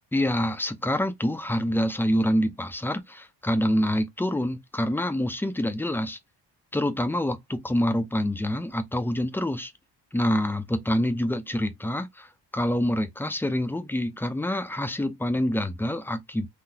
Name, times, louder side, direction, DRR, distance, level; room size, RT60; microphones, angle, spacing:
voice 1, 0.1-6.2 6.7-9.7 10.1-16.5, left 1 dB, 5° left, 0.6 m, -26 dB
3.9 x 2.8 x 2.8 m
cardioid pair, 125°, 41 cm